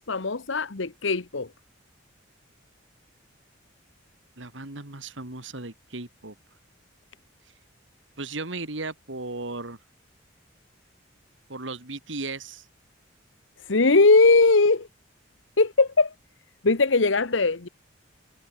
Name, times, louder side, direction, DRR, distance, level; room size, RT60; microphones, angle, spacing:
voice 1, 0.0-1.5 13.7-14.9 15.6-16.1 16.6-17.7, left 3 dB, 75° left, 1.2 m, -20 dB
voice 2, 4.4-6.3 8.2-9.8 11.5-12.7, right 3 dB, 75° right, 2.6 m, -36 dB
head